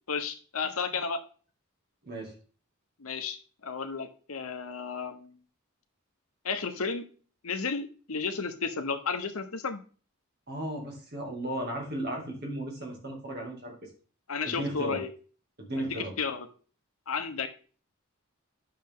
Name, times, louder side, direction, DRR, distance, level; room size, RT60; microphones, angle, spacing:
voice 1, 0.1-1.2 3.0-5.4 6.4-7.0 7.4-9.8 14.3-15.1 15.8-16.5 17.1-17.5, left 5 dB, 85° left, 8 dB, 1.0 m, -33 dB
voice 2, 2.0-2.4 10.5-13.9 14.4-15.0 15.6-16.1, right 1 dB, 50° right, 1 dB, 2.5 m, -35 dB
9.6 x 6.6 x 3.7 m, 0.40 s
head